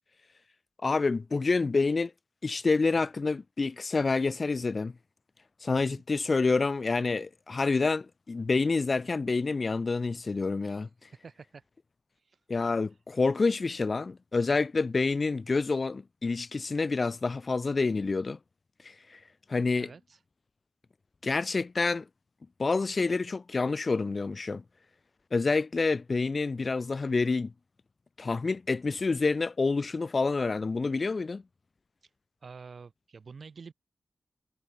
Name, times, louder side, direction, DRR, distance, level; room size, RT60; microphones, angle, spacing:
voice 1, 0.8-2.1 2.4-4.9 5.6-10.9 12.5-18.4 18.8-19.2 19.5-19.9 21.2-22.1 22.6-24.6 25.3-27.5 28.2-31.4, left 3 dB, 45° left, 0.4 m, -28 dB
voice 2, 5.7-6.0 10.7-10.8 11.2-11.6 12.2-12.4 19.8-20.2 32.4-33.7, right 5 dB, 65° right, 2.9 m, -48 dB
wide cardioid pair, 80°, 0 cm